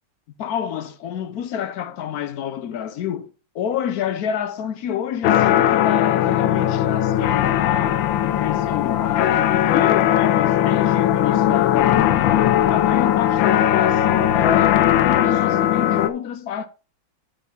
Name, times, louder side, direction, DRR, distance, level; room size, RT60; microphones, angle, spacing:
voice 1, 0.4-12.4 12.7-16.7, left 9 dB, 65° left, 1.0 m, -28 dB
sound 1, 5.2-16.1, left 11 dB, 90° left, 1.4 m, -18 dB
8.3 x 7.4 x 3.6 m
omnidirectional pair, 2.0 m